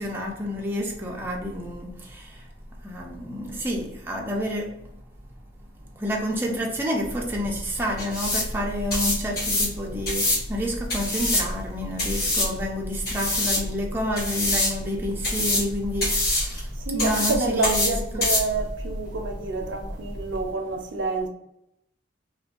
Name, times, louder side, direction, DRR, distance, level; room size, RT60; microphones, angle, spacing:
voice 1, 0.0-2.4 2.8-4.8 6.0-18.3, equal, 10° right, 0.4 m, -29 dB
sound 1, 7.0-20.5, left 1 dB, 55° left, 1.1 m, -27 dB
voice 2, 16.8-21.3, right 2 dB, 75° right, 0.5 m, -28 dB
2.5 x 2.2 x 2.3 m
head